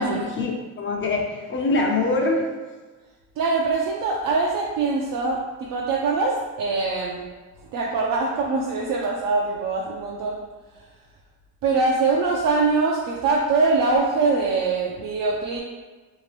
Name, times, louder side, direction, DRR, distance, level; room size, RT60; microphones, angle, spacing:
voice 1, 0.0-2.5, left 2 dB, 35° left, 0 dB, 0.5 m, -24 dB
voice 2, 3.4-7.2 7.7-10.4 11.6-15.6, right 3 dB, 70° right, -3 dB, 0.5 m, -23 dB
2.7 x 2.5 x 3.2 m, 1.3 s
cardioid pair, 115°, 33 cm